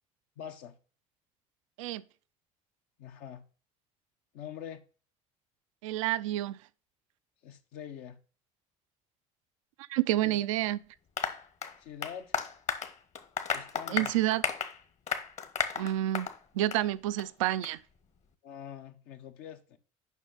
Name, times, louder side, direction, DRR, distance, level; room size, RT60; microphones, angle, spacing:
voice 1, 0.4-0.8 3.0-3.5 4.3-4.8 7.4-8.2 10.2-10.5 11.8-12.3 13.5-14.2 18.4-19.8, left 9 dB, 75° left, 1.1 m, -44 dB
voice 2, 5.8-6.6 9.9-10.8 13.9-14.4 15.8-16.3 16.5-17.8, right 14 dB, 90° right, 0.4 m, -29 dB
Applause, 11.2-16.4 16.7-16.8 17.2-17.3 17.6-17.7, left 6 dB, 45° left, 1.2 m, -34 dB
7.2 x 5.5 x 3.9 m
hypercardioid pair, 75°, 16 cm